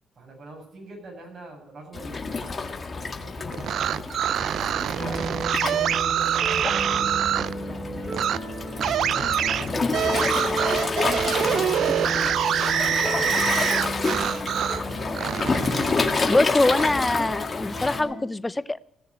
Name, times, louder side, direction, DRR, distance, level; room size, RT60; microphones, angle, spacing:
voice 1, 0.2-8.1 8.8-11.0 11.3-15.3, right 2 dB, 50° right, -1 dB, 7.7 m, -44 dB
Waves surf, 1.9-18.0, left 4 dB, 35° left, 1.7 m, -29 dB
sound 1, 3.5-7.5 8.1-8.4 8.8-14.8 15.1-16.9, right 10 dB, 70° right, 0.4 m, -25 dB
sound 2, 5.0-18.2, right 1 dB, 25° right, 3.0 m, -34 dB
voice 2, 16.3-18.8, left 2 dB, 15° left, 16 dB, 0.6 m, -23 dB
17.0 x 6.6 x 9.7 m, 0.74 s
cardioid pair, 90°, 0 cm